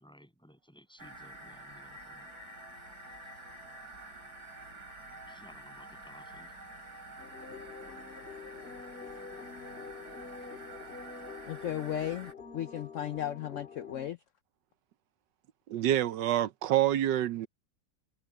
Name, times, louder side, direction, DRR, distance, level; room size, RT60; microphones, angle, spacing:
voice 1, 0.0-2.3 5.3-6.5, equal, ahead, 7.2 m, -57 dB
sound 1, 1.0-12.3, right 2 dB, 60° right, 7.2 m, -48 dB
sound 2, 7.2-14.1, left 5 dB, 35° left, 2.2 m, -47 dB
voice 2, 11.5-14.2, left 11 dB, 75° left, 0.7 m, -35 dB
voice 3, 15.7-17.5, right 12 dB, 80° right, 1.4 m, -27 dB
omnidirectional pair, 1.9 m